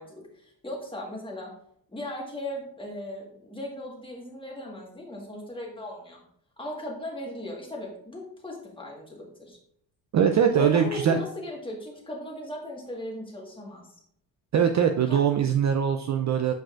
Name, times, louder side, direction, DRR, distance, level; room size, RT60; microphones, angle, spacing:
voice 1, 0.0-1.5 1.9-6.2 6.6-9.6 10.5-13.9 15.1-15.2, left 1 dB, 10° left, -2 dB, 1.5 m, -37 dB
voice 2, 10.1-11.2 14.5-16.5, right 7 dB, 40° right, 6 dB, 0.4 m, -22 dB
7.6 x 5.0 x 2.5 m, 0.69 s
cardioid pair, 115°, 44 cm